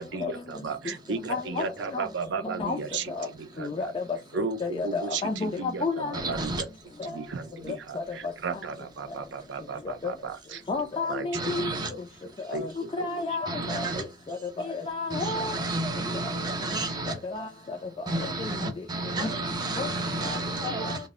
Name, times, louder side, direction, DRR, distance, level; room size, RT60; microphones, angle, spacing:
voice 1, 0.0-3.9 4.3-6.7 7.0-10.8 11.1-11.5 11.8-11.9 12.5-13.4 13.8-14.0, right 5 dB, 75° right, 0.4 m, -35 dB
voice 2, 1.3-1.7 1.9-2.1 2.6-2.8 3.2-3.3 3.6-4.2 4.6-6.1 7.0-7.1 10.0-10.1 10.7-11.7 12.5-12.7 13.0-14.4 14.7-15.5 17.2-17.8 18.2-18.6 19.2-19.3 19.8-19.9 20.2-20.4 20.8-21.0, left 3 dB, 30° left, 0.3 m, -31 dB
voice 3, 6.1-6.6 11.3-11.9 13.5-14.0 15.1-17.1 18.1-21.0, right 2 dB, 25° right, 0.7 m, -31 dB
2.0 x 2.0 x 3.5 m
head